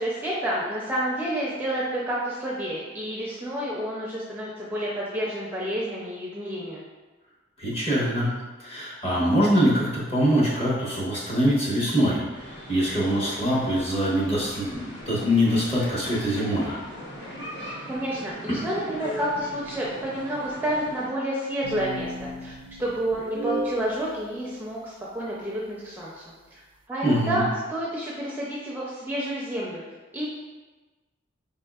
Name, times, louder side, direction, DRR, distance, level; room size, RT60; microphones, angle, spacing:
voice 1, 0.0-6.8 17.7-22.5 22.8-26.6 26.9-27.4 27.7-29.8 30.1-30.3, right 1 dB, 10° right, -6 dB, 0.5 m, -30 dB
voice 2, 7.6-8.3 8.6-16.7 18.5-18.6 27.0-27.4, equal, 30° left, -6 dB, 1.1 m, -24 dB
sound 1, 12.3-21.1, equal, 65° left, 1.4 m, -40 dB
sound 2, 21.6-23.9, right 1 dB, 85° right, 0.4 m, -33 dB
4.7 x 3.6 x 2.3 m, 1.2 s
head